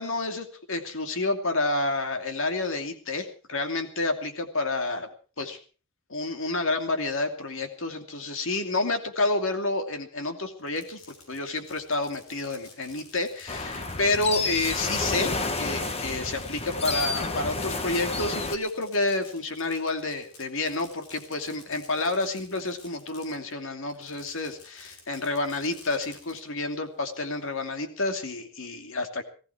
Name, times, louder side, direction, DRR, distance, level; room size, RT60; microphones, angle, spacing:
voice 1, 0.0-5.1 5.4-5.6 6.1-15.3 15.6-29.2, left 2 dB, 60° left, 6 dB, 2.6 m, -29 dB
Fireworks, 10.6-23.5 23.9-26.4, left 3 dB, 85° left, 7.3 m, -52 dB
sound 1, 13.5-18.5, left 3 dB, 30° left, 1.5 m, -30 dB
19.0 x 16.0 x 4.6 m, 0.39 s
head